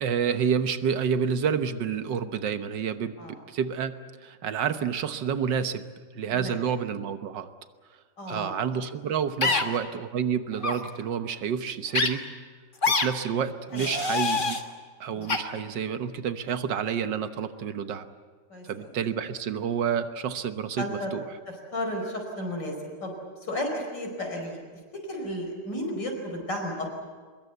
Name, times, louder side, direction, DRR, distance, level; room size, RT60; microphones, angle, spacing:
voice 1, 0.0-3.2 3.5-3.9 4.2-5.9 6.1-7.5 8.3-12.2 12.9-14.6 15.0-18.1 18.6-21.2, right 7 dB, 80° right, 9 dB, 1.8 m, -29 dB
voice 2, 8.2-8.5 9.4-9.6 13.7-14.0 15.1-15.3 18.5-18.9 20.8-21.1 21.7-22.7 23.0-23.1 23.4-24.6 25.1-27.0, left 1 dB, 80° left, 2 dB, 5.7 m, -33 dB
sound 1, 9.4-9.6 10.6-10.8 11.9-12.1 12.8-13.1 13.7-14.6 15.3-15.4, left 4 dB, 30° left, 1.6 m, -24 dB
24.0 x 22.0 x 8.1 m, 1.5 s
omnidirectional pair, 1.9 m